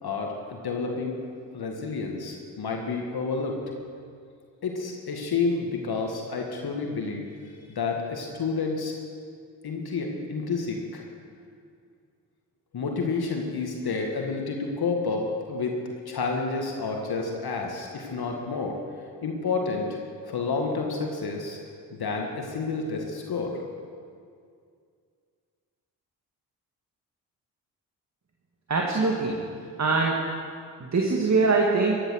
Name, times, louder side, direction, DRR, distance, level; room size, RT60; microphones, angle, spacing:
voice 1, 0.0-1.2 1.5-3.6 4.6-7.3 7.8-8.9 9.6-11.0 12.7-15.8 16.1-18.8 19.2-20.0 20.3-21.6 21.9-23.6, left 4 dB, 55° left, 1 dB, 1.9 m, -29 dB
voice 2, 28.7-29.4 29.8-30.2 30.8-31.9, right 3 dB, 35° right, 0 dB, 2.0 m, -23 dB
15.0 x 10.0 x 6.4 m, 2.2 s
hypercardioid pair, 40°, 46 cm